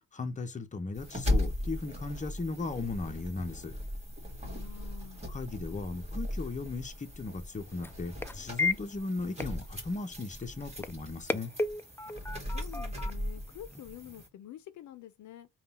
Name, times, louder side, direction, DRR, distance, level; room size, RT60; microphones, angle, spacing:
voice 1, 0.1-3.7 5.3-11.5, left 3 dB, 25° left, 0.8 m, -37 dB
sound 1, 0.9-14.3, left 1 dB, 20° right, 1.7 m, -38 dB
voice 2, 4.4-5.2 12.3-15.5, left 11 dB, 70° left, 0.6 m, -48 dB
sound 2, 6.4-14.3, left 3 dB, 10° left, 0.3 m, -38 dB
3.6 x 2.4 x 4.2 m
cardioid pair, 90°, 30 cm